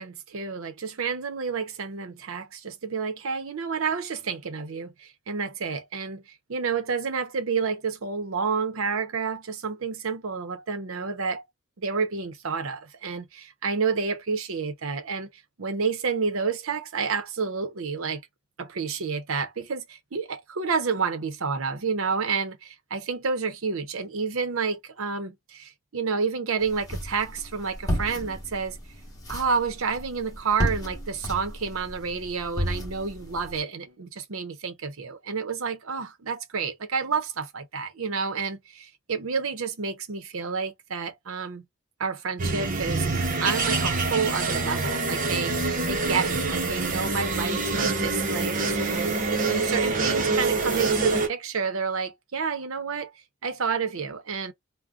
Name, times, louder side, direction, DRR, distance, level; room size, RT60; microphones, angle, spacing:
voice 1, 0.0-11.4 11.8-15.3 15.6-18.2 18.6-28.8 29.3-41.7 42.0-53.1 53.4-54.5, right 5 dB, 75° right, 0.7 m, -30 dB
sound 1, 26.6-33.6, equal, 15° left, 1.1 m, -33 dB
sound 2, 42.4-51.3, right 3 dB, 40° right, 0.8 m, -26 dB
3.6 x 2.1 x 2.3 m
head